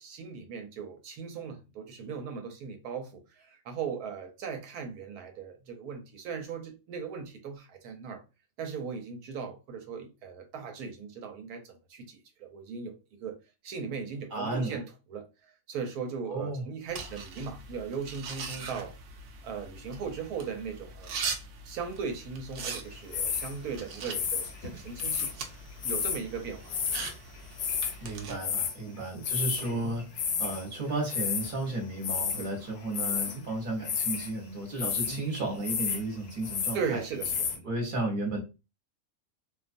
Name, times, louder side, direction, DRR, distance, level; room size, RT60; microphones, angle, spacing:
voice 1, 0.0-8.2 8.6-13.4 13.6-18.9 19.4-21.2 21.7-25.3 25.8-26.7 28.9-29.0 29.8-29.9 32.4-32.5 33.3-33.5 35.0-35.2 36.7-37.7, right 5 dB, 90° right, 1.2 m, -38 dB
voice 2, 14.3-14.8 16.3-16.6 28.0-30.0 30.4-37.0 37.6-38.4, right 2 dB, 40° right, 0.9 m, -33 dB
sound 1, 16.9-28.4, right 4 dB, 65° right, 0.8 m, -41 dB
sound 2, 23.1-23.6 24.1-25.3 25.8-26.2 26.7-27.1 27.4-27.9 28.4-28.7 29.2-29.7 30.0-30.6 31.1-31.5 32.0-32.5 32.9-33.4 33.8-34.3 34.8-35.2 35.6-36.0 36.3-36.8 37.2-37.6, left 7 dB, 85° left, 1.1 m, -31 dB
2.5 x 2.4 x 2.5 m
omnidirectional pair, 1.5 m